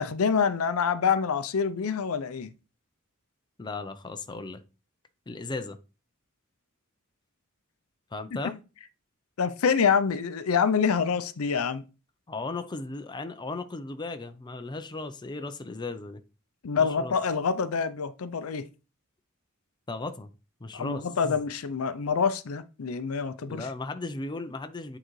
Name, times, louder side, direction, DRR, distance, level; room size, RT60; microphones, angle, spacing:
voice 1, 0.0-2.5 9.4-11.8 16.6-18.7 20.7-23.7, left 6 dB, 80° left, 0.5 m, -26 dB
voice 2, 3.6-4.6 5.3-5.8 8.1-8.6 12.3-16.2 16.8-17.2 19.9-20.3 20.6-21.4 23.5-25.0, left 3 dB, 20° left, 0.5 m, -36 dB
8.7 x 3.9 x 3.1 m
head